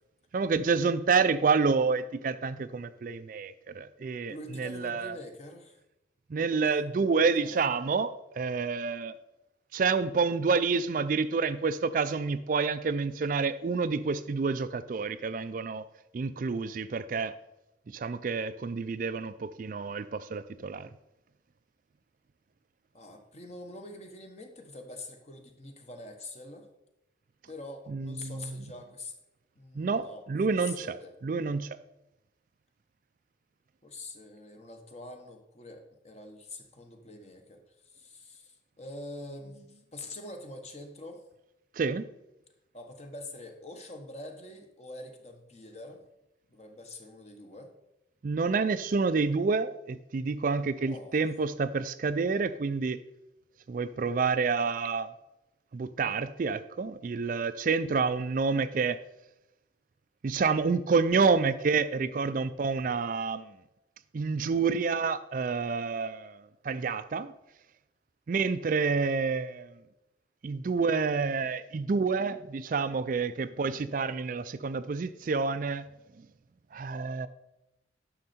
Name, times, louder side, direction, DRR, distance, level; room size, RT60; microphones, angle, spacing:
voice 1, 0.3-5.2 6.3-9.1 9.7-15.9 16.1-17.3 17.9-20.9 27.9-28.5 29.7-31.0 31.2-31.8 41.8-42.1 48.2-53.0 53.7-55.1 55.7-59.0 60.2-63.5 64.1-67.3 68.3-69.7 70.4-75.9 76.7-77.3, right 4 dB, 45° right, 13 dB, 0.4 m, -28 dB
voice 2, 4.3-5.8 7.4-7.7 22.9-26.7 27.5-29.1 29.6-31.1 33.8-41.2 42.7-46.0 46.5-47.7 50.9-51.3, left 2 dB, 35° left, 5 dB, 1.2 m, -45 dB
9.8 x 6.4 x 4.3 m, 0.91 s
head